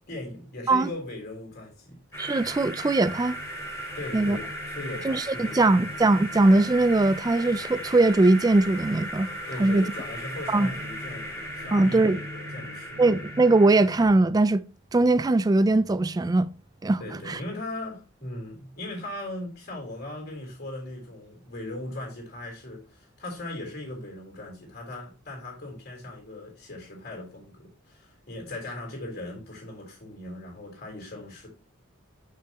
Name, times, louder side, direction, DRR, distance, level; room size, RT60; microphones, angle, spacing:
voice 1, 0.1-2.0 3.9-5.8 9.5-13.1 17.0-31.5, left 1 dB, 50° left, 3.5 m, -38 dB
sound 1, 2.1-14.1, equal, 15° left, 2.4 m, -37 dB
voice 2, 2.2-3.4 4.1-4.4 5.0-9.3 9.6-9.9 10.5-10.7 11.7-12.2 13.0-14.6 14.9-16.5 16.8-17.0 17.3-17.4, right 2 dB, 20° right, 0.3 m, -21 dB
7.6 x 6.5 x 3.0 m
head